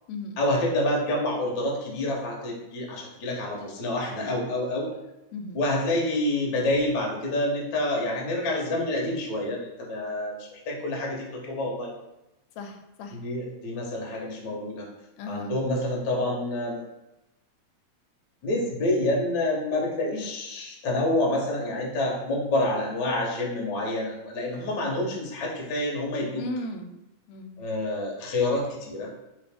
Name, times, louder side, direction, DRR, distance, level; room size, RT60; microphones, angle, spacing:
voice 1, 0.4-4.9 5.5-11.9 13.1-14.9 15.3-16.8 18.4-26.4 27.6-29.1, left 1 dB, 65° left, -2 dB, 1.2 m, -28 dB
voice 2, 12.6-13.2 15.2-15.5 26.4-27.0 27.3-27.6, left 2 dB, 80° left, 4 dB, 1.8 m, -36 dB
3.9 x 3.5 x 3.4 m, 0.94 s
omnidirectional pair, 3.4 m